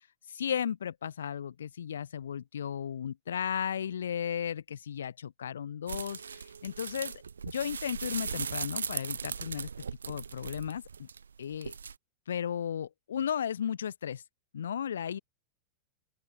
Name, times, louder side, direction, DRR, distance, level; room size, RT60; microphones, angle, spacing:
voice 1, 0.3-7.1 7.4-9.7 10.1-11.1 11.4-11.7 12.3-14.2 14.5-15.2, left 8 dB, 65° left, 6.2 m, -35 dB
sound 1, 5.9-12.0, right 6 dB, 70° right, 5.0 m, -38 dB
open air
figure-of-eight pair, 90°, 0 cm